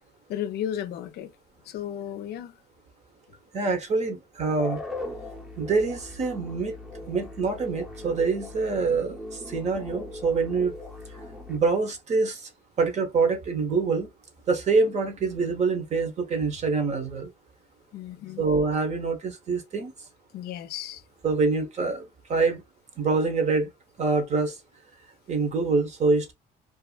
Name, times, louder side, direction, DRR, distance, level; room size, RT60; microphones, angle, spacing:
voice 1, 0.3-1.3 1.6-2.6 17.9-18.4 20.3-21.0, left 10 dB, 70° left, 0.5 m, -34 dB
voice 2, 3.5-4.8 5.6-6.8 7.1-10.7 11.5-12.5 12.8-14.1 14.5-17.3 18.4-19.9 21.2-22.6 23.0-23.7 24.0-24.6 25.3-26.3, right 4 dB, 45° right, 0.8 m, -25 dB
sound 1, 4.6-11.6, left 2 dB, ahead, 0.7 m, -39 dB
2.5 x 2.4 x 2.3 m
cardioid pair, 110°, 17 cm